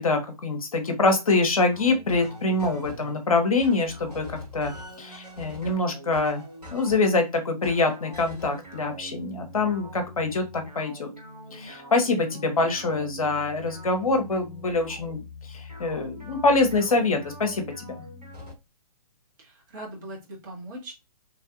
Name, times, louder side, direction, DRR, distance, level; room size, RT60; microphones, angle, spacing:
voice 1, 0.0-4.3 4.5-4.7 5.0-6.4 6.7-11.1 11.5-15.2 15.5-18.1, left 3 dB, 60° left, 5 dB, 0.8 m, -25 dB
sound 1, 1.7-3.2 3.6-7.2 7.6-18.5, left 1 dB, 85° right, 1.2 m, -43 dB
voice 2, 19.4-20.9, right 1 dB, 30° right, -3 dB, 1.3 m, -40 dB
3.0 x 2.5 x 2.4 m, 0.24 s
figure-of-eight pair, 130°, 20 cm